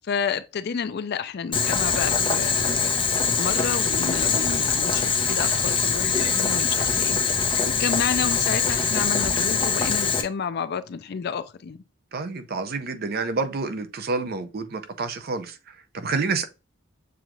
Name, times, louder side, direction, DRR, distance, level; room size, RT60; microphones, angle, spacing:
voice 1, 0.0-2.9 3.3-7.2 7.7-11.8, left 6 dB, 55° left, 0.4 m, -30 dB
Boiling, 1.5-10.2, left 5 dB, 25° left, 0.8 m, -23 dB
voice 2, 12.1-16.5, right 4 dB, 50° right, 0.6 m, -29 dB
6.9 x 2.4 x 3.0 m
head